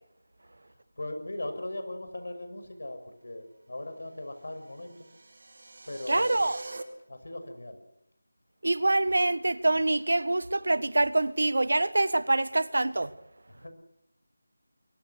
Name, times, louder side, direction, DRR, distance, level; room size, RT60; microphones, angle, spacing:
voice 1, 0.7-5.1 5.9-6.5 7.1-7.8 13.5-13.7, left 1 dB, 60° left, 6.0 m, -39 dB
sound 1, 4.3-6.8, right 3 dB, 35° right, 2.3 m, -45 dB
voice 2, 6.1-6.6 8.6-13.1, right 2 dB, 60° right, 1.2 m, -25 dB
23.5 x 18.0 x 8.0 m
figure-of-eight pair, 180°, 0 cm